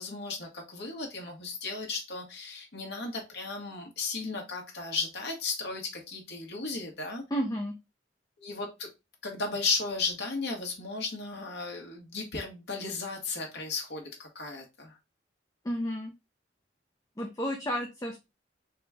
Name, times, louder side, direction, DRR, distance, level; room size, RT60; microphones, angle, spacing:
voice 1, 0.0-7.2 8.4-8.9 9.2-15.0, left 4 dB, 65° left, 1 dB, 1.3 m, -35 dB
voice 2, 7.3-7.7 15.6-16.1 17.2-18.2, equal, 20° left, 1 dB, 0.6 m, -31 dB
3.8 x 3.0 x 3.5 m, 0.24 s
head